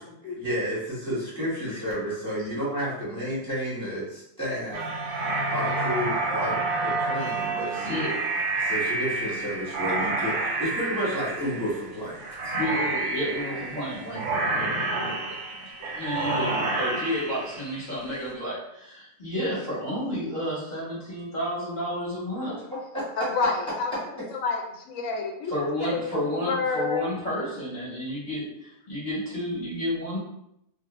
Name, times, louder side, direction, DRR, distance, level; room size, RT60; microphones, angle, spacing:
voice 1, 0.0-4.9 5.1-8.0 8.6-12.6 22.9-23.0, equal, 5° left, -9 dB, 1.0 m, -31 dB
sound 1, 4.7-18.1, right 3 dB, 90° right, 1.0 m, -29 dB
voice 2, 12.5-22.5 25.5-30.2, equal, 40° left, -7 dB, 0.9 m, -31 dB
voice 3, 23.2-23.9 24.3-27.0, left 4 dB, 85° left, 2 dB, 1.0 m, -29 dB
2.3 x 2.0 x 2.9 m, 0.78 s
omnidirectional pair, 1.4 m